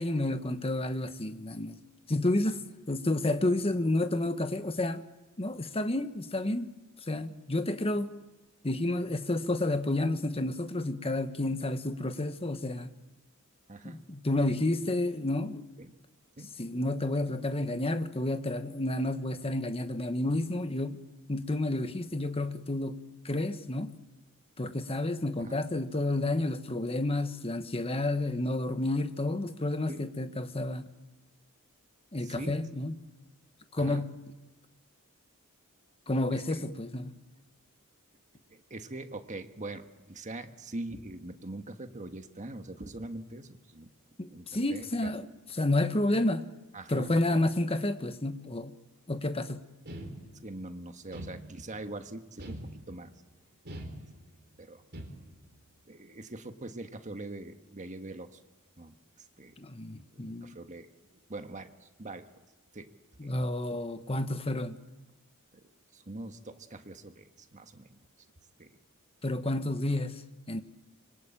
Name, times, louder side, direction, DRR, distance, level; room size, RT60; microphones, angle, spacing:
voice 1, 0.0-1.8 2.1-2.6 2.9-5.0 5.4-6.7 7.1-8.1 8.6-12.9 13.8-15.7 16.6-21.0 21.3-23.0 23.2-24.0 24.6-30.9 32.1-32.9 33.7-34.1 36.1-37.2 44.2-46.4 46.9-48.7 49.1-49.7 59.6-60.6 63.2-64.8 69.2-70.2 70.5-70.6, left 2 dB, 25° left, 1.2 m, -30 dB
voice 2, 32.2-32.6 33.8-34.0 36.5-36.6 38.5-43.9 44.3-45.1 46.7-47.1 50.4-53.1 54.6-54.8 55.9-58.4 58.8-58.9 59.4-59.5 60.1-60.9 61.3-62.3 62.7-62.9 63.2-63.3 65.9-67.9 68.6-68.8, right 2 dB, 35° right, 1.5 m, -43 dB
sound 1, 49.9-50.6 51.1-51.9 52.4-53.2 53.6-54.5 54.9-55.5, right 1 dB, 50° right, 4.2 m, -43 dB
25.0 x 23.5 x 8.9 m
head